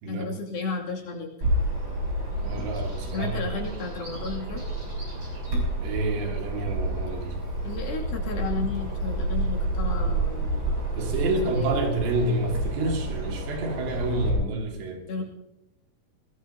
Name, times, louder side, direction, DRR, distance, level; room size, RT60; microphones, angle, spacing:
voice 1, 0.1-1.3 3.1-5.0 7.6-11.8 15.1-15.2, left 4 dB, 60° left, 4.4 m, -34 dB
Bird vocalization bird call bird song, 1.4-14.3, right 1 dB, 30° right, 7.7 m, -29 dB
voice 2, 2.4-3.4 5.8-7.4 10.9-15.0, right 2 dB, 85° right, 4.5 m, -28 dB
21.0 x 20.0 x 2.9 m
omnidirectional pair, 4.9 m